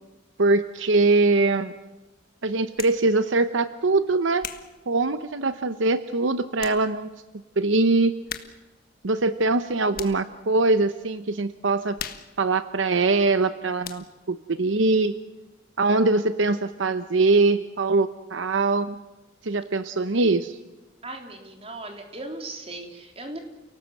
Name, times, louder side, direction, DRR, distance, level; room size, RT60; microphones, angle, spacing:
voice 1, 0.4-1.7 2.4-4.5 4.9-7.1 7.6-8.1 9.0-12.0 12.4-15.2 15.8-19.0 19.4-20.6, right 3 dB, 75° right, 11 dB, 0.8 m, -22 dB
sound 1, 2.7-3.1 3.7-5.7 6.2-6.3 6.6-6.9 7.2-7.3 8.3-8.8 9.1-10.3 10.8-11.1 11.4-13.5 13.8-14.3, left 8 dB, 45° left, 1.5 m, -40 dB
voice 2, 21.0-23.4, right 2 dB, 30° right, 3 dB, 3.4 m, -37 dB
29.0 x 18.5 x 7.8 m, 1.1 s
head